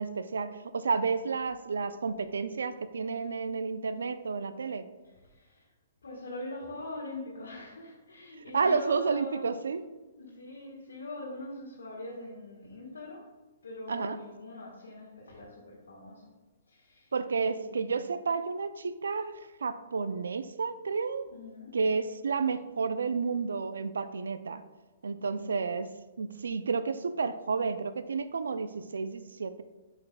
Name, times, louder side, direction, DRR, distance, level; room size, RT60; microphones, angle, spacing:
voice 1, 0.0-4.9 8.5-9.8 13.9-14.2 17.1-21.3 21.7-24.6 25.0-25.9 26.2-29.6, right 5 dB, 85° right, 12 dB, 0.4 m, -31 dB
voice 2, 5.3-5.6 6.0-9.5 10.2-13.2 13.6-16.2 16.7-17.1 17.4-17.8 21.3-21.7 25.2-25.6, left 2 dB, 85° left, -4 dB, 1.3 m, -43 dB
8.0 x 5.6 x 2.2 m, 1.2 s
hypercardioid pair, 140°, 0 cm